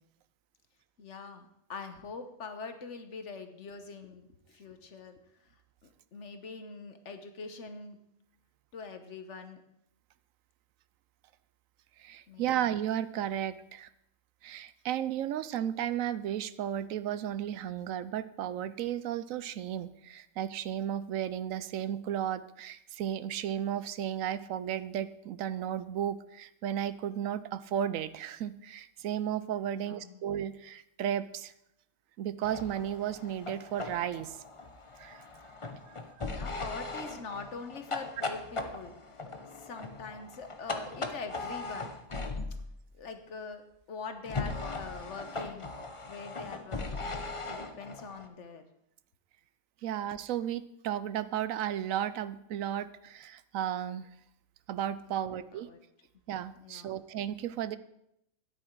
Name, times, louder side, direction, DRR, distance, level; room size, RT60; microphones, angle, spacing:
voice 1, 1.0-8.0 8.7-9.6 12.3-12.5 29.7-30.2 36.2-41.9 43.0-45.7 46.0-48.7 49.8-50.0 55.1-55.8 56.5-57.0, left 4 dB, 60° left, 8 dB, 1.3 m, -44 dB
voice 2, 12.0-13.9 14.4-31.5 32.2-34.4 35.0-35.2 35.9-36.3 49.8-54.1 54.7-55.7 56.3-57.8, right 10 dB, 75° right, 15 dB, 1.0 m, -34 dB
sound 1, 32.4-42.7 44.2-48.3, left 3 dB, 25° left, 0.8 m, -39 dB
12.5 x 9.8 x 4.6 m, 0.79 s
omnidirectional pair, 1.5 m